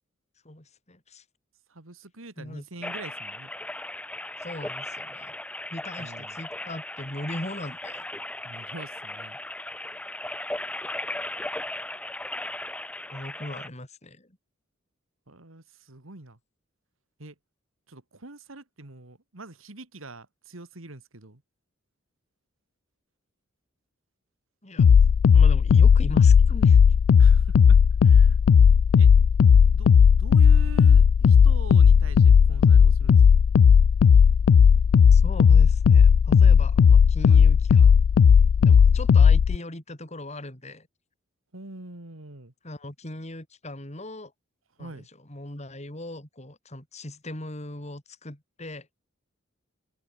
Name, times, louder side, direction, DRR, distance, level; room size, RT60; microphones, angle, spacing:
voice 1, 0.4-1.2 2.4-2.7 4.4-5.4 5.7-8.1 13.1-14.4 24.6-24.9 25.3-26.8 35.1-38.0 38.6-40.9 42.6-44.3 44.8-45.0 45.3-48.9, left 1 dB, 35° left, 4.2 m, -39 dB
voice 2, 1.7-3.5 6.0-6.4 8.4-9.4 15.3-16.4 17.2-17.3 17.9-21.4 27.2-27.8 28.0-28.4 29.0-29.1 29.7-33.4 37.3-37.4 41.5-42.5 44.8-45.1, right 2 dB, 90° right, 2.5 m, -44 dB
sound 1, 2.8-13.7, left 1 dB, 5° left, 0.8 m, -37 dB
sound 2, 24.8-39.6, left 7 dB, 85° left, 0.3 m, -16 dB
open air
head